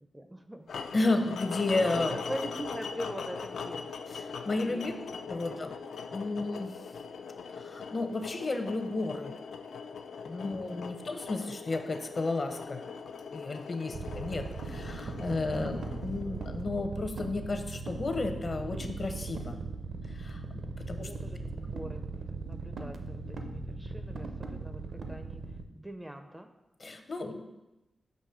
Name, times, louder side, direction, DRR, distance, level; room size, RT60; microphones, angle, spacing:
voice 1, 0.1-0.7 1.9-3.8 4.6-4.9 5.3-5.6 10.3-10.7 13.7-14.1 21.0-25.4 25.8-26.5, equal, 10° right, 7 dB, 0.4 m, -42 dB
sound 1, 0.7-16.8, left 5 dB, 85° left, 0.3 m, -41 dB
voice 2, 0.9-2.2 4.1-4.9 5.3-5.7 6.1-6.7 7.6-9.3 10.2-12.8 13.3-19.6 20.1-20.4 20.8-21.1 26.8-27.5, left 2 dB, 45° left, 6 dB, 0.6 m, -32 dB
sound 2, 13.9-25.7, right 4 dB, 60° right, 0.5 m, -39 dB
6.5 x 2.9 x 5.7 m, 0.99 s
wide cardioid pair, 95°, 0 cm